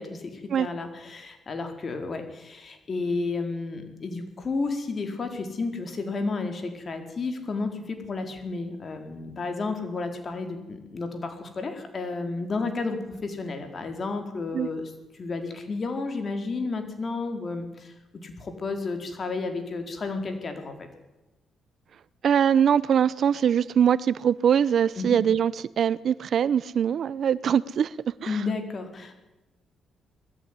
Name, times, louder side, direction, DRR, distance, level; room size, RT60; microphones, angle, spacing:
voice 1, 0.0-17.9 18.2-20.8 25.0-25.2 28.3-29.2, left 3 dB, 45° left, 6 dB, 4.6 m, -32 dB
voice 2, 22.2-25.5 25.8-27.9 28.2-28.4, right 8 dB, 60° right, 20 dB, 0.7 m, -22 dB
20.5 x 14.0 x 9.8 m, 1.0 s
cardioid pair, 80°, 0 cm